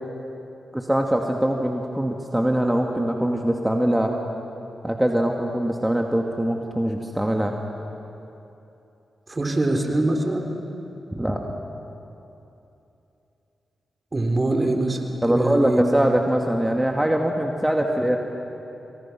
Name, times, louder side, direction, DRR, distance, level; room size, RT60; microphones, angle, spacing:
voice 1, 0.7-4.1 4.8-7.5 11.1-11.4 15.2-18.2, right 1 dB, 10° right, 1 dB, 2.2 m, -22 dB
voice 2, 9.3-10.5 14.1-15.0 15.3-15.8, right 2 dB, 35° right, 3 dB, 3.7 m, -23 dB
28.0 x 22.5 x 6.1 m, 2.9 s
supercardioid pair, 40°, 0 cm